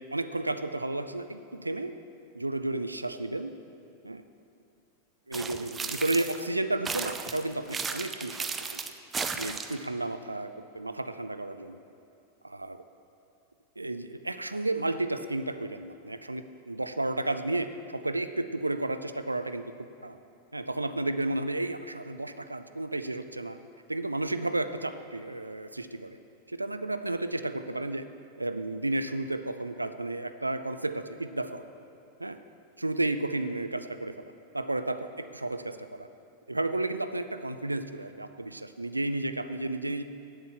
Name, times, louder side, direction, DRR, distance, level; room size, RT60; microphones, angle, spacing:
voice 1, 0.0-1.9 2.3-3.5 4.0-4.2 5.3-8.8 9.3-11.8 12.4-12.8 13.8-19.6 20.0-20.2 20.5-23.6 23.9-26.2 26.5-28.0 28.4-31.6 32.2-32.4 32.8-34.3 34.5-36.1 36.5-40.0, right 2 dB, 85° right, 11 dB, 0.4 m, -32 dB
sound 1, 5.3-6.5 6.9-9.9, right 5 dB, 15° right, 0.6 m, -35 dB
8.9 x 7.9 x 7.2 m, 2.7 s
figure-of-eight pair, 90°, 0 cm